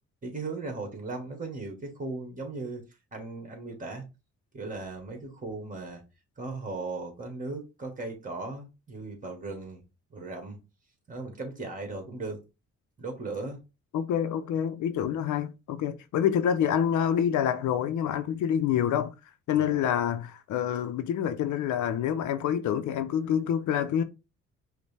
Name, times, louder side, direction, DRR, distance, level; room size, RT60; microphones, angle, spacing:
voice 1, 0.2-2.8 3.1-4.0 4.5-6.0 6.4-9.8 10.1-10.6 11.1-12.4 13.0-13.6 19.6-19.9, right 3 dB, 25° right, 1.7 m, -37 dB
voice 2, 13.9-19.1 19.5-24.0, left 9 dB, 75° left, 0.5 m, -27 dB
5.1 x 2.2 x 3.3 m
cardioid pair, 90°, 30 cm